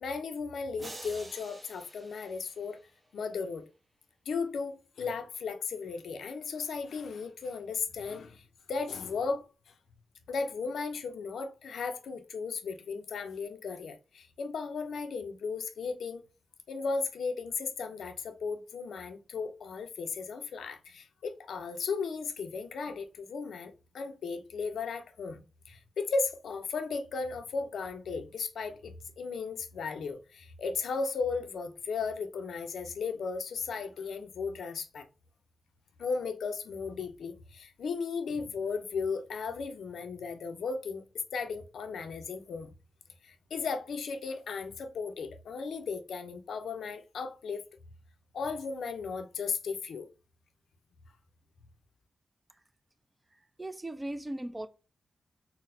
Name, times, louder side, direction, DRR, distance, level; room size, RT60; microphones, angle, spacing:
voice 1, 0.0-2.8 3.1-3.7 4.3-9.5 10.3-16.2 16.7-35.1 36.0-41.0 41.3-42.7 43.2-47.6 48.3-50.1, left 4 dB, 85° left, 0.4 m, -35 dB
sound 1, 0.8-3.1, right 2 dB, 40° right, 0.9 m, -48 dB
voice 2, 53.6-54.7, right 1 dB, 20° right, 0.4 m, -37 dB
3.9 x 2.0 x 2.5 m
cardioid pair, 65°, 0 cm